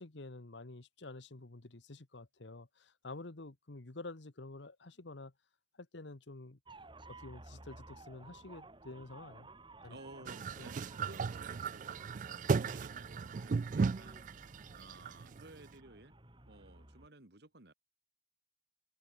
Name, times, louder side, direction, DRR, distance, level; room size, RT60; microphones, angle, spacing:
voice 1, 0.0-5.3 5.8-6.6 7.1-9.5 9.8-10.3 10.6-10.7 12.5-12.8, left 2 dB, 70° left, 1.3 m, -49 dB
sound 1, 6.7-17.1, right 2 dB, 25° right, 3.4 m, -56 dB
voice 2, 9.9-12.3 12.7-14.4 14.7-16.1 16.5-17.7, right 2 dB, 60° right, 2.3 m, -56 dB
sound 2, 10.3-15.6, right 5 dB, 45° right, 0.3 m, -36 dB
open air
head